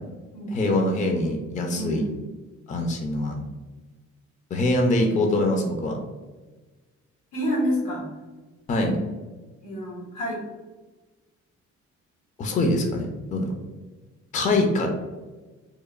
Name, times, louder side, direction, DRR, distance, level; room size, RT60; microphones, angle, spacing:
voice 1, 0.5-2.0 2.7-3.4 4.5-6.0 8.7-8.9 12.4-13.5 14.3-14.9, left 1 dB, 25° left, 2 dB, 0.4 m, -23 dB
voice 2, 1.7-2.2 7.3-8.1 8.8-9.0 9.6-10.4, equal, 85° left, -4 dB, 1.2 m, -28 dB
2.9 x 2.0 x 2.3 m, 1.2 s
cardioid pair, 90°, 30 cm